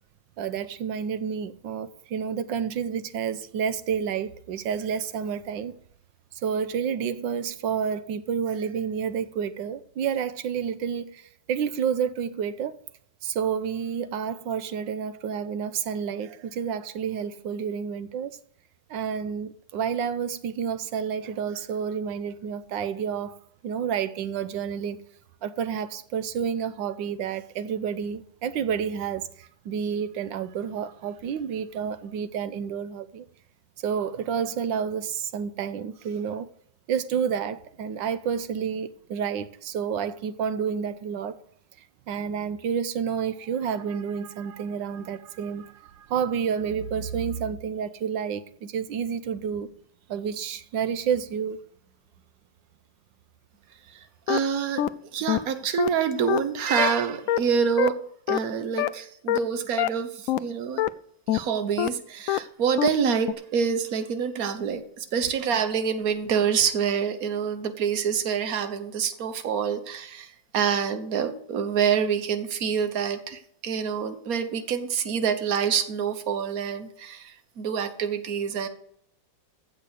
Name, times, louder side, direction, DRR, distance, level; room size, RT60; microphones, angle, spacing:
voice 1, 0.4-5.7 6.3-12.8 13.2-18.3 18.9-23.4 23.6-25.0 25.4-33.2 33.8-36.5 36.9-41.4 41.8-49.7 50.1-51.6, right 7 dB, 80° right, 1.5 m, -30 dB
sound 1, 54.3-54.4 54.8-54.9 55.3-55.4 55.8-55.9 56.3-56.4 56.8-56.9 57.3-57.4 57.8-57.9 58.3-58.4 58.8-58.9 59.3-59.4 59.8-59.9 60.3-60.4 60.8-60.9 61.3-61.4 61.8-61.9 62.3-62.4 62.8-62.9 63.3-63.4, left 13 dB, 85° left, 0.7 m, -23 dB
voice 2, 54.3-58.0 58.3-60.8 61.3-78.7, right 7 dB, 55° right, 1.5 m, -26 dB
15.0 x 5.6 x 6.3 m
omnidirectional pair, 2.0 m